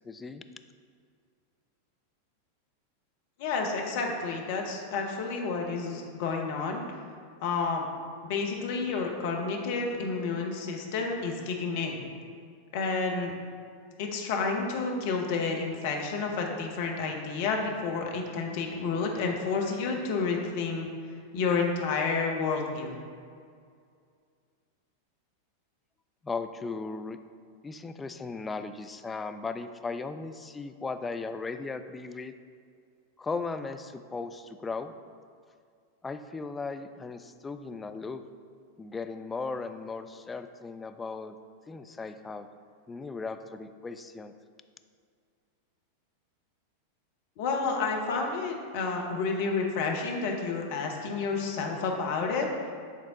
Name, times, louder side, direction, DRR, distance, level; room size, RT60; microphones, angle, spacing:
voice 1, 0.0-0.4 26.2-27.2 27.6-32.3 33.2-34.9 36.0-38.2 38.8-41.4 41.7-42.5 42.9-44.3, left 4 dB, 15° left, 8 dB, 0.3 m, -37 dB
voice 2, 3.4-6.8 7.4-7.9 8.2-12.0 12.7-13.3 14.0-20.9 21.3-22.9 47.4-52.5, left 4 dB, 50° left, 1 dB, 0.9 m, -30 dB
8.4 x 3.5 x 3.8 m, 2.2 s
figure-of-eight pair, 90°, 0 cm